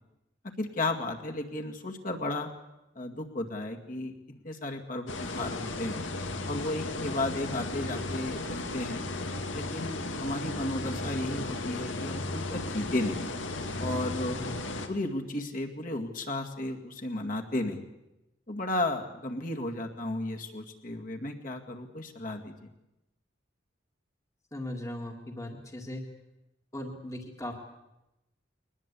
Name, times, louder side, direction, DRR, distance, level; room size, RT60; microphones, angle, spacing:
voice 1, 0.6-2.5 3.0-4.1 4.4-6.1 6.5-9.0 9.5-13.2 13.8-14.4 14.9-17.8 18.5-22.5, left 2 dB, 45° left, 2 dB, 2.2 m, -34 dB
sound 1, 5.1-14.9, left 2 dB, 80° left, 2.3 m, -35 dB
voice 2, 24.5-26.0 26.7-27.6, left 1 dB, 15° left, 3 dB, 1.9 m, -38 dB
22.0 x 20.0 x 8.5 m, 0.94 s
head